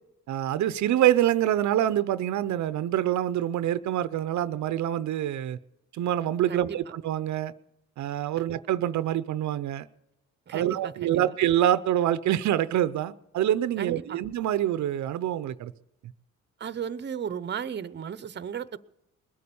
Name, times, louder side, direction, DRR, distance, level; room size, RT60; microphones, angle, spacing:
voice 1, 0.3-5.6 5.9-7.5 8.0-9.9 10.5-15.7, right 12 dB, 70° right, 15 dB, 0.7 m, -26 dB
voice 2, 10.5-11.3 13.8-14.2 16.6-18.8, right 7 dB, 35° right, 16 dB, 0.8 m, -35 dB
21.0 x 8.6 x 7.0 m, 0.89 s
cardioid pair, 90°, 30 cm